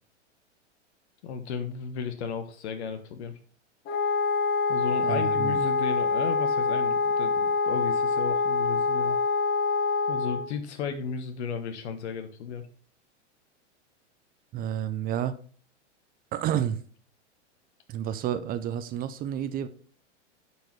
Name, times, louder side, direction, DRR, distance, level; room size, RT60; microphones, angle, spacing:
voice 1, 1.2-3.4 4.7-9.2 10.1-12.7, left 6 dB, 70° left, 8 dB, 1.2 m, -34 dB
Wind instrument woodwind instrument, 3.9-10.5, left 4 dB, 30° left, 1.1 m, -25 dB
voice 2, 5.0-5.6 14.5-15.4 16.3-16.8 17.9-19.7, right 10 dB, 25° right, 12 dB, 0.5 m, -30 dB
8.8 x 4.7 x 4.6 m, 0.44 s
hypercardioid pair, 120°, 35 cm